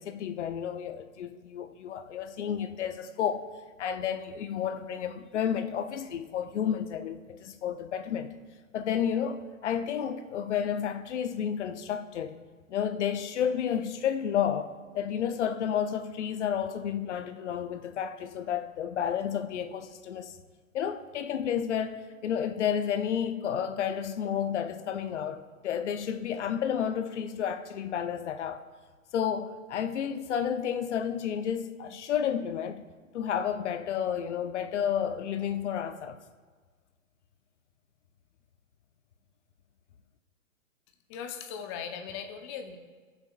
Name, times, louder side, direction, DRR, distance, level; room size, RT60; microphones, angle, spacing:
voice 1, 0.0-3.5 3.8-8.3 8.7-12.4 12.7-20.4 20.7-28.6 29.1-32.8 33.1-36.2, left 8 dB, 55° left, 0.8 m, -31 dB
voice 2, 41.1-42.8, left 7 dB, 20° left, 0.6 m, -38 dB
18.5 x 7.0 x 2.5 m
hypercardioid pair, 130°, 42 cm